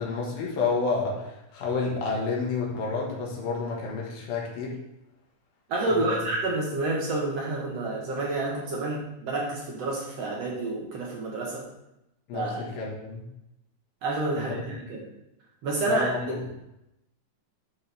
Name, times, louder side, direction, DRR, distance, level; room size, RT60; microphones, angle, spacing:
voice 1, 0.0-4.8 5.9-6.2 12.3-13.3 14.3-14.6 15.9-16.4, left 4 dB, 70° left, -3 dB, 3.3 m, -30 dB
voice 2, 5.7-11.7 12.3-12.6 14.0-15.1 15.6-16.1, right 2 dB, 70° right, -3 dB, 1.6 m, -29 dB
11.0 x 4.4 x 3.4 m, 0.88 s
omnidirectional pair, 4.5 m